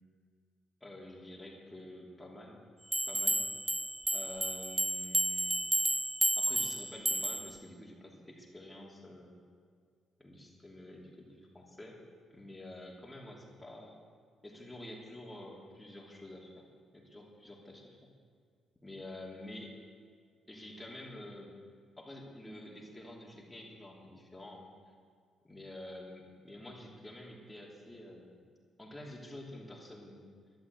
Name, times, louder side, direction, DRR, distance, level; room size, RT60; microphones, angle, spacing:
voice 1, 0.8-2.6 3.1-3.4 4.1-5.5 6.4-9.4 10.2-12.0 12.3-14.0 14.4-16.6 16.9-18.1 18.8-19.8 20.5-21.5 22.0-24.7 25.4-28.4 28.8-30.2, left 1 dB, 10° left, -1 dB, 2.9 m, -48 dB
sound 1, 2.9-7.6, right 1 dB, 5° right, 0.4 m, -32 dB
12.0 x 11.5 x 8.3 m, 2.1 s
cardioid pair, 90°, 0 cm